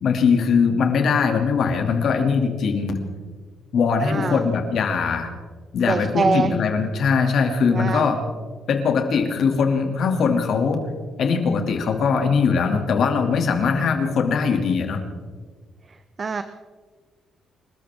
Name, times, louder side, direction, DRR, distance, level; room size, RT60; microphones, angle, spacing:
voice 1, 0.0-3.0 3.7-5.3 5.7-8.2 8.7-10.8 11.2-15.0, left 5 dB, 65° left, 4 dB, 2.7 m, -21 dB
voice 2, 4.0-4.4 5.9-6.5 7.6-8.1 16.2-16.4, right 4 dB, 40° right, 10 dB, 0.9 m, -24 dB
29.0 x 13.5 x 3.7 m, 1.5 s
cardioid pair, 90°, 0 cm